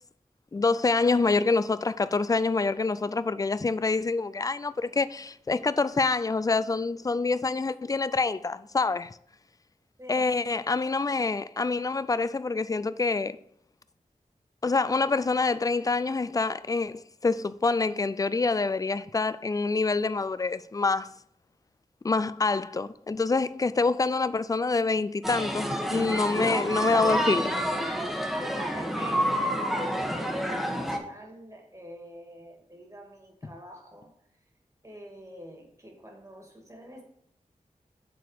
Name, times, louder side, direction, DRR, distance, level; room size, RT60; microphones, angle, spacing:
voice 1, 0.5-9.2 10.1-13.4 14.6-21.1 22.0-27.5, left 3 dB, 25° left, 0.3 m, -26 dB
sound 1, 25.2-31.0, equal, ahead, 1.1 m, -28 dB
voice 2, 28.4-34.1 34.8-37.0, right 1 dB, 25° right, 1.9 m, -46 dB
6.7 x 4.1 x 6.4 m
wide cardioid pair, 75°, 14 cm